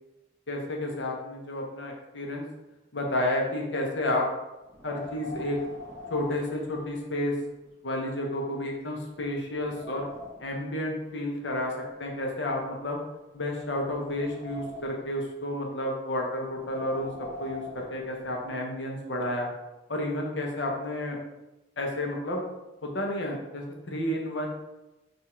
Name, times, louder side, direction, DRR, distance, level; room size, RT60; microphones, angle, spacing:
voice 1, 0.5-2.5 2.9-4.3 4.8-5.6 6.1-7.4 7.8-10.1 10.4-13.0 13.3-19.5 19.9-21.2 21.8-22.4 22.8-24.5, left 1 dB, 75° left, 0 dB, 0.9 m, -31 dB
Wind, 4.6-7.3 7.6-7.7 8.4-8.5 9.0-10.6 11.5-13.0 13.6-15.2 16.4-18.6, left 2 dB, 15° right, 0.9 m, -44 dB
5.7 x 2.7 x 3.1 m, 1.0 s
head